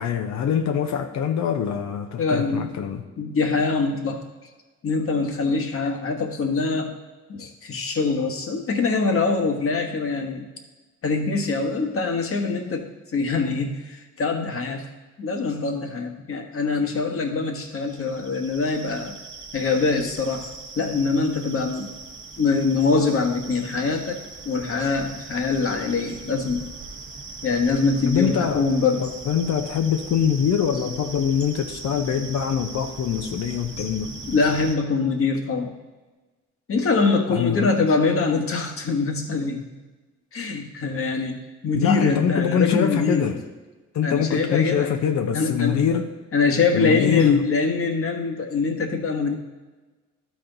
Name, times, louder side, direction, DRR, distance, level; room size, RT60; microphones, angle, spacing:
voice 1, 0.0-3.0 28.1-28.7 29.0-34.1 37.3-37.7 41.7-43.4 43.9-46.1 46.7-47.4, left 8 dB, 65° left, 6 dB, 0.7 m, -24 dB
voice 2, 2.2-2.6 3.2-4.2 4.8-7.0 7.3-10.5 11.0-14.9 15.2-19.2 19.5-21.9 22.4-26.6 27.4-29.0 33.8-33.9 34.3-35.7 36.7-39.6 40.3-41.4 41.6-43.2 44.0-45.0 45.3-45.9 46.3-49.3, left 4 dB, 45° left, 4 dB, 1.3 m, -23 dB
sound 1, 17.7-34.8, right 3 dB, 40° right, 1.1 m, -40 dB
12.0 x 4.3 x 3.9 m, 1.2 s
cardioid pair, 90°, 30 cm